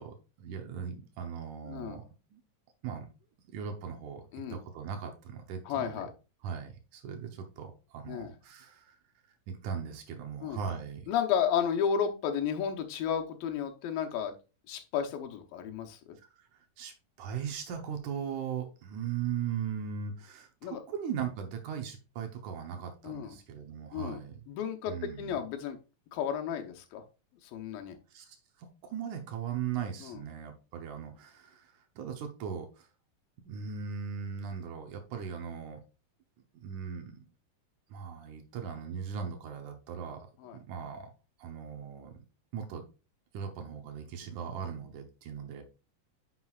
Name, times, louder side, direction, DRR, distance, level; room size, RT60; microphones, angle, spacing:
voice 1, 0.0-2.0 2.3-2.4 2.8-3.1 3.5-6.1 6.4-9.0 9.5-11.1 16.2-24.4 24.9-25.4 28.1-32.9 33.4-35.8 36.6-37.2 37.9-40.3 40.5-41.1 41.4-42.1 42.5-42.8 43.3-45.6, right 7 dB, 70° right, 5 dB, 2.2 m, -39 dB
voice 2, 1.6-2.0 4.3-4.6 5.7-6.1 8.1-8.3 10.4-10.6 11.1-14.3 14.7-16.0 20.6-20.8 23.0-23.3 23.9-24.2 24.5-25.8 26.1-27.0 27.5-28.0 30.0-30.2 40.4-40.6, left 8 dB, 90° left, 5 dB, 2.7 m, -32 dB
9.5 x 6.0 x 2.4 m, 0.31 s
omnidirectional pair, 4.0 m